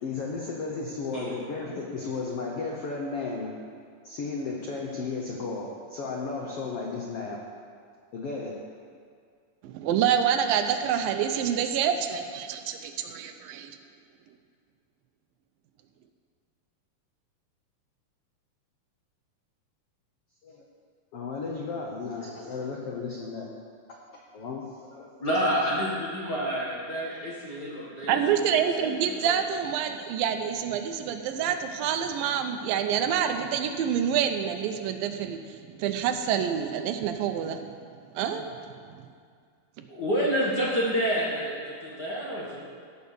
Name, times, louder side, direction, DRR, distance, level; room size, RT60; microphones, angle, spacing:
voice 1, 0.0-3.5 4.0-7.4 8.1-8.5 20.4-20.7 21.1-23.5 23.9-24.0 24.3-25.1, left 4 dB, 75° left, -1 dB, 1.4 m, -34 dB
voice 2, 9.6-13.7 28.1-37.7 38.1-38.6 38.9-39.0 39.8-39.9, right 8 dB, 80° right, 7 dB, 2.4 m, -27 dB
voice 3, 25.2-28.4 28.8-28.9 29.3-29.4 39.9-42.7, equal, 45° left, -6 dB, 1.4 m, -28 dB
16.5 x 5.6 x 6.8 m, 2.1 s
omnidirectional pair, 4.1 m